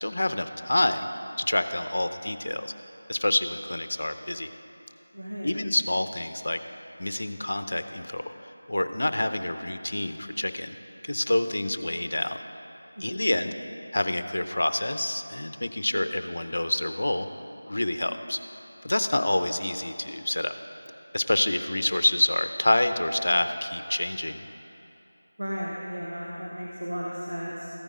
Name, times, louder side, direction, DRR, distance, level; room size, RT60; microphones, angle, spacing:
voice 1, 0.0-1.1 1.4-2.7 3.1-4.5 5.4-6.6 7.0-8.3 8.7-10.7 11.0-12.4 13.0-13.5 13.9-17.3 17.6-18.4 18.8-20.5 21.1-24.4, left 1 dB, 65° left, 10 dB, 0.6 m, -27 dB
voice 2, 5.1-5.5 13.0-13.2 25.4-27.7, equal, 85° right, -5 dB, 1.5 m, -34 dB
14.5 x 10.0 x 3.7 m, 2.9 s
figure-of-eight pair, 170°, 0 cm